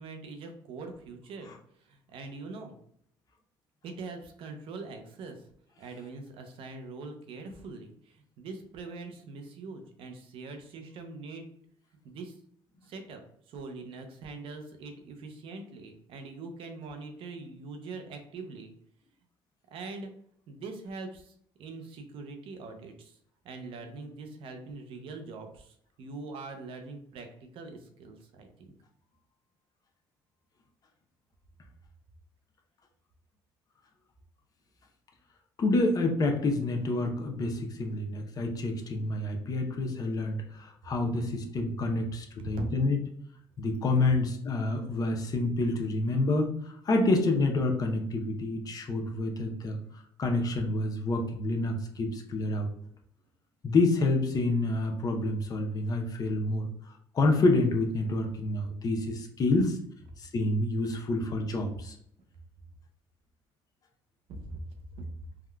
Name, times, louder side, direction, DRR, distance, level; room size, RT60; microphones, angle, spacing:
voice 1, 0.0-2.8 3.8-5.5 5.8-11.4 12.0-12.4 12.8-13.2 13.5-18.7 19.7-20.1 20.5-23.2 23.4-27.3 27.5-28.7 42.5-42.7 64.3-64.6, right 3 dB, 65° right, 5 dB, 0.6 m, -43 dB
voice 2, 35.6-43.0 43.6-46.5 46.8-49.8 50.2-52.7 53.6-56.7 57.1-59.8 60.2-62.0, left 2 dB, 40° left, 3 dB, 0.6 m, -28 dB
3.6 x 2.2 x 2.2 m, 0.66 s
cardioid pair, 95°, 10 cm